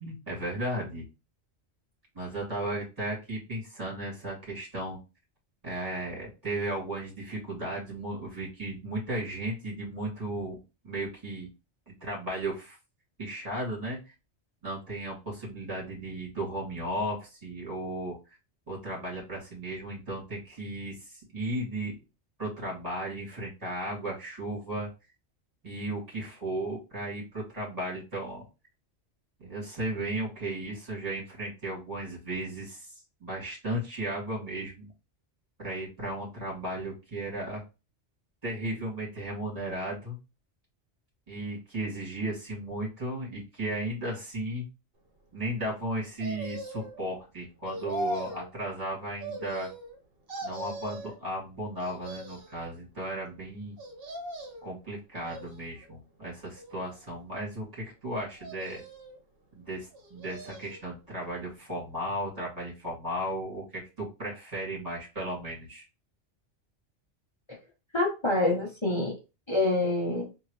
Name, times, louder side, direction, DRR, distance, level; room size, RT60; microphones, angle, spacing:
voice 1, 0.0-1.0 2.1-5.0 5.6-10.6 10.8-11.5 11.9-12.8 13.2-14.0 14.6-18.2 18.7-22.0 22.4-24.9 25.6-28.5 29.4-34.9 35.6-37.6 38.4-40.2 41.3-44.7 45.3-49.7 50.4-53.8 54.6-58.8 59.6-65.8, right 1 dB, 30° right, -5 dB, 2.4 m, -35 dB
sound 1, 46.2-47.0 47.6-48.5 49.2-50.0 50.3-51.2 51.8-52.6 53.8-54.7 55.2-55.9 56.6-57.4 58.4-59.2 59.9-60.9 61.2-61.3, right 1 dB, 55° right, 1.2 m, -40 dB
voice 2, 67.9-69.1 69.5-70.3, left 2 dB, 25° left, -3 dB, 0.8 m, -26 dB
3.8 x 2.7 x 3.1 m, 0.28 s
omnidirectional pair, 1.2 m